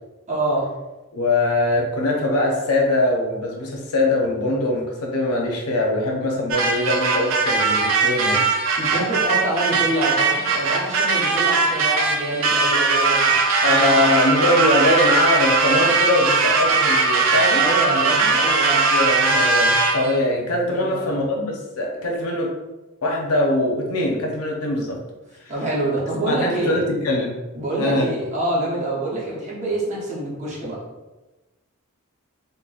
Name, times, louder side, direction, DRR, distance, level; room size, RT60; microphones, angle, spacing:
voice 1, 0.3-0.7 8.8-14.1 17.6-18.8 20.7-21.2 25.5-26.8 27.5-30.8, right 2 dB, 35° right, -6 dB, 0.8 m, -26 dB
voice 2, 1.1-8.4 13.6-18.0 18.7-22.5 23.0-25.0 25.4-25.5 26.3-27.4 27.7-28.1, left 1 dB, 85° left, 1 dB, 0.6 m, -22 dB
sound 1, 6.5-20.2, right 4 dB, 65° right, 0.4 m, -20 dB
3.8 x 2.1 x 2.4 m, 1.1 s
head